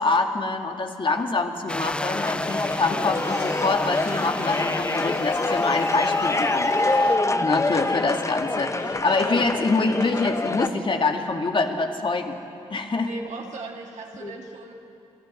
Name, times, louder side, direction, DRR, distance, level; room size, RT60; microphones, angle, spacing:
voice 1, 0.0-12.4 12.7-13.1 14.2-14.4, left 3 dB, 40° left, 4 dB, 2.1 m, -25 dB
sound 1, 1.7-7.2, left 1 dB, 10° left, 0.4 m, -33 dB
sound 2, 2.2-10.7, left 2 dB, 25° left, 1.0 m, -25 dB
voice 2, 13.0-14.7, right 3 dB, 65° right, 0 dB, 2.3 m, -38 dB
28.5 x 12.0 x 7.8 m, 2.7 s
supercardioid pair, 50°, 13 cm